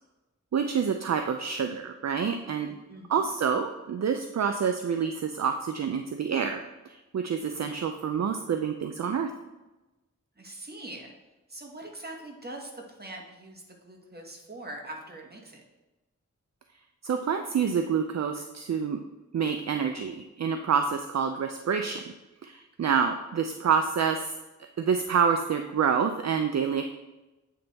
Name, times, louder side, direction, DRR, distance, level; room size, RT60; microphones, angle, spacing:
voice 1, 0.5-2.7 3.1-9.3 17.0-19.0 19.3-22.1 22.4-24.4 24.8-26.9, right 6 dB, 60° right, 6 dB, 0.4 m, -27 dB
voice 2, 2.9-3.3 10.4-11.1 11.5-15.6, right 1 dB, 30° right, 0 dB, 1.3 m, -43 dB
8.5 x 3.4 x 4.0 m, 1.1 s
wide cardioid pair, 50°, 31 cm